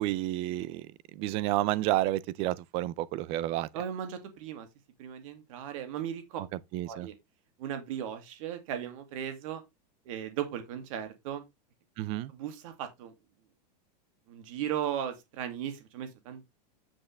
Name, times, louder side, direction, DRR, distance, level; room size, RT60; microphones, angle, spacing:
voice 1, 0.0-3.7 6.4-7.1 12.0-12.3, right 15 dB, 25° right, 0.4 m, -31 dB
voice 2, 3.7-4.7 5.0-6.4 6.9-7.1 7.6-9.6 10.1-11.4 12.3-13.1 14.3-16.4, right 9 dB, 50° right, 2.3 m, -37 dB
8.8 x 7.3 x 3.3 m
supercardioid pair, 175°, 21 cm